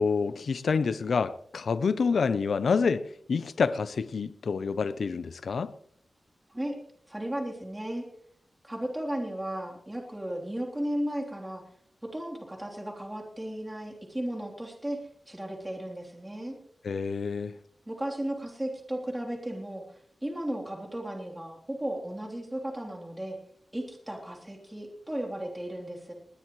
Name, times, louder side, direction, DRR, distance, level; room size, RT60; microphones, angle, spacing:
voice 1, 0.0-5.7 16.8-17.5, left 5 dB, 85° left, 0.6 m, -27 dB
voice 2, 7.1-8.0 8.6-11.6 12.1-15.0 15.3-16.6 17.9-23.4 23.7-26.1, right 1 dB, 15° right, 3.4 m, -35 dB
20.0 x 20.0 x 3.2 m
wide cardioid pair, 115°, 0 cm